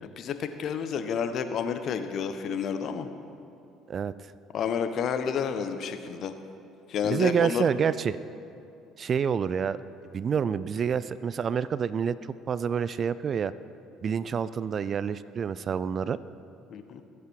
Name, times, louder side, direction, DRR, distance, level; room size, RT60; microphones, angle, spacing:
voice 1, 0.0-3.1 4.5-6.3 6.9-7.7 16.7-17.0, left 7 dB, 55° left, 9 dB, 1.1 m, -30 dB
voice 2, 7.0-8.2 9.0-9.8 10.1-12.1 12.5-13.5 14.0-16.2, right 7 dB, 45° right, 16 dB, 0.5 m, -27 dB
22.5 x 8.5 x 4.7 m, 2.6 s
hypercardioid pair, 60°, 0 cm